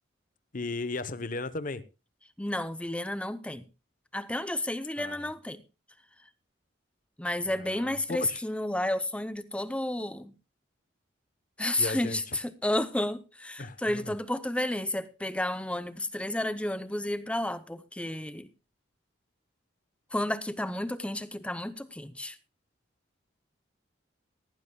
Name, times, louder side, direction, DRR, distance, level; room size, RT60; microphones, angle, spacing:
voice 1, 0.5-1.8 5.0-5.3 7.5-8.4 11.8-12.4 13.6-14.1, left 3 dB, 40° left, 0.9 m, -36 dB
voice 2, 2.4-3.7 4.1-5.6 7.2-10.3 11.6-18.5 20.1-22.4, left 1 dB, 5° left, 0.6 m, -31 dB
18.0 x 15.0 x 2.3 m
head